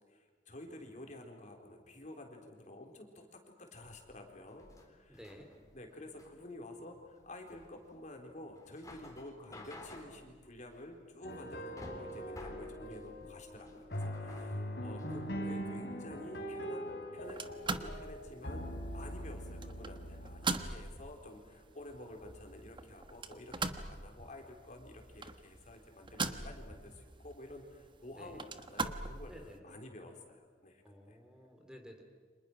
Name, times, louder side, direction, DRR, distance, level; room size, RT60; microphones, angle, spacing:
voice 1, 0.1-5.2 5.7-17.4 17.7-29.3 29.6-31.2, left 1 dB, 45° left, 2 dB, 4.0 m, -50 dB
sound 1, 3.7-15.3, left 1 dB, 20° left, 3.7 m, -54 dB
voice 2, 5.1-5.5 14.4-15.7 28.1-28.4 29.3-29.6 30.8-32.0, equal, 5° right, 3 dB, 2.9 m, -54 dB
sound 2, 11.2-20.5, equal, 75° left, 3.9 m, -42 dB
sound 3, 17.2-29.6, right 3 dB, 30° right, 1.3 m, -42 dB
30.0 x 26.5 x 6.2 m, 1.5 s
head